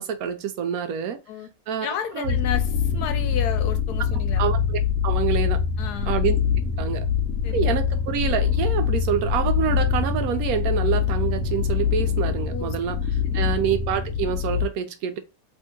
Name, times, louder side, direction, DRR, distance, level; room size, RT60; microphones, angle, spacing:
voice 1, 0.0-1.2 1.7-1.9 2.1-2.4 4.4-5.6 6.1-6.4 6.8-7.1 7.5-13.0 13.3-15.2, right 8 dB, 75° right, 1.0 m, -26 dB
voice 2, 1.8-4.5 5.8-6.1 7.4-7.7 12.5-12.7 13.3-13.6, left 8 dB, 85° left, 1.2 m, -32 dB
sound 1, 2.2-14.7, left 7 dB, 65° left, 1.0 m, -24 dB
2.8 x 2.7 x 3.5 m
omnidirectional pair, 1.7 m